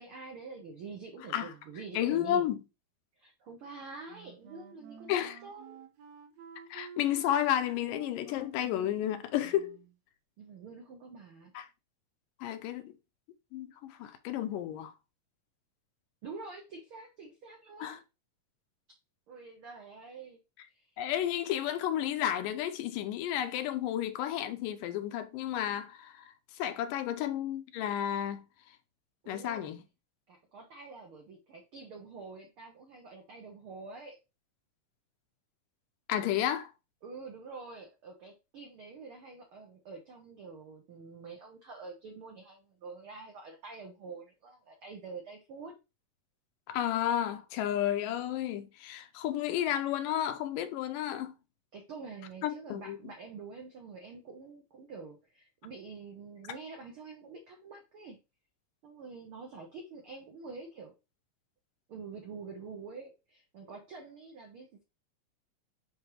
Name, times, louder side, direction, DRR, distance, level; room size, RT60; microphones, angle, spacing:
voice 1, 0.0-2.5 3.2-5.8 10.4-11.5 16.2-17.9 19.3-20.4 20.7-21.0 29.2-29.7 30.3-34.2 37.0-45.7 51.7-58.2 58.8-60.9 61.9-64.8, right 4 dB, 85° right, 1.1 m, -47 dB
voice 2, 2.0-2.6 5.1-5.4 6.7-9.8 11.6-11.7 12.4-12.9 13.5-14.9 17.8-18.0 21.0-26.3 26.6-28.4 29.3-29.8 36.1-36.7 46.7-51.3 52.4-53.0, left 11 dB, 85° left, 2.3 m, -32 dB
Wind instrument woodwind instrument, 4.1-10.0, right 7 dB, 65° right, 1.8 m, -52 dB
10.0 x 3.6 x 3.0 m
omnidirectional pair, 3.9 m